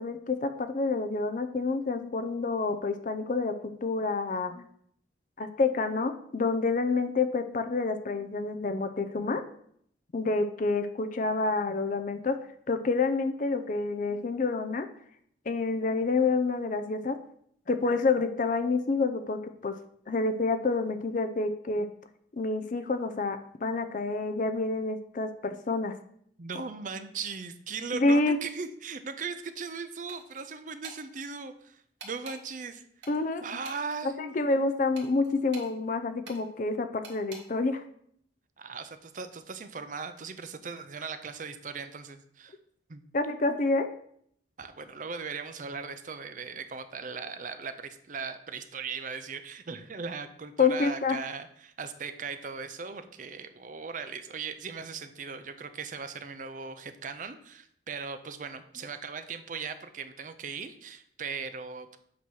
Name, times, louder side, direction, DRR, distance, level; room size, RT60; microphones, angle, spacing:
voice 1, 0.0-3.5 3.8-4.6 5.4-9.4 10.1-12.4 12.7-14.9 15.5-17.2 17.7-19.7 20.1-21.9 22.4-25.9 27.9-28.4 33.1-33.4 34.2-37.8 43.1-43.9 50.6-51.2, left 3 dB, 45° left, 8 dB, 0.4 m, -28 dB
voice 2, 26.4-32.8 33.4-34.3 38.6-42.6 42.9-43.0 44.6-62.0, right 5 dB, 45° right, 10 dB, 0.5 m, -38 dB
sound 1, 30.1-30.4 30.8-31.0 32.0-32.4 33.0-34.0 34.9-35.7 36.2-36.4 37.0-37.4, right 3 dB, 80° right, 1.9 m, -46 dB
8.2 x 3.0 x 6.2 m, 0.68 s
head